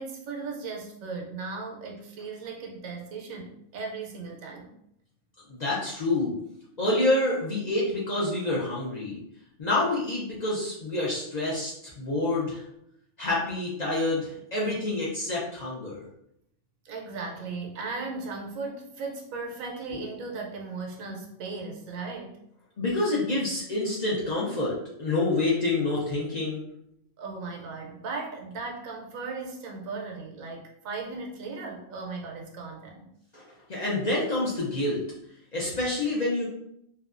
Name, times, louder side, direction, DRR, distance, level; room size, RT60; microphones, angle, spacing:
voice 1, 0.0-4.7 16.8-22.4 27.2-33.1, right 4 dB, 85° right, 0 dB, 1.0 m, -37 dB
voice 2, 5.6-6.3 6.8-9.2 9.6-12.6 13.2-16.0 22.8-26.6 33.3-33.4 33.7-35.0 35.5-36.5, left 2 dB, 55° left, -6 dB, 0.5 m, -27 dB
2.7 x 2.2 x 2.4 m, 0.76 s
omnidirectional pair, 1.4 m